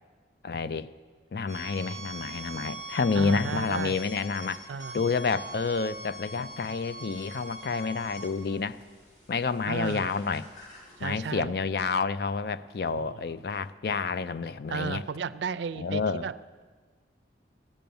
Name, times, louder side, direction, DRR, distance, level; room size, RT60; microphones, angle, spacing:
voice 1, 0.4-0.9 1.3-4.6 4.9-8.8 9.3-10.5 11.0-15.0 15.8-16.3, left 4 dB, 55° left, 14 dB, 0.4 m, -29 dB
sound 1, 1.5-11.2, right 2 dB, 40° left, 3.3 m, -43 dB
voice 2, 3.1-4.0 4.7-4.9 9.7-10.1 11.0-11.5 12.9-13.4 14.7-16.4, right 6 dB, 75° right, 16 dB, 0.4 m, -34 dB
15.0 x 9.0 x 7.0 m, 1.5 s
head